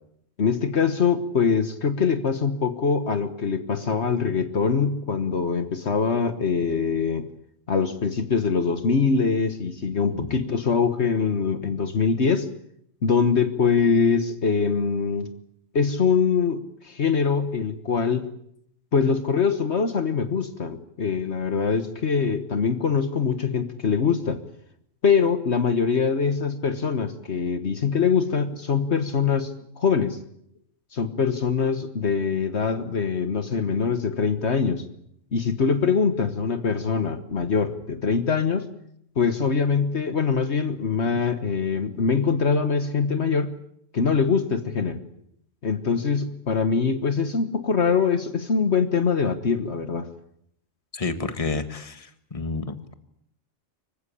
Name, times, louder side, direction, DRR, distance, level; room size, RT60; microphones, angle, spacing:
voice 1, 0.4-7.3 7.7-12.5 13.0-15.3 15.7-18.3 18.9-24.4 25.0-30.2 30.9-34.8 35.3-38.7 39.2-43.5 43.9-45.0 45.6-50.1, left 5 dB, 60° left, 10 dB, 1.6 m, -23 dB
voice 2, 50.9-52.9, left 3 dB, 25° left, 9 dB, 1.7 m, -30 dB
25.5 x 15.5 x 10.0 m, 0.72 s
omnidirectional pair, 1.3 m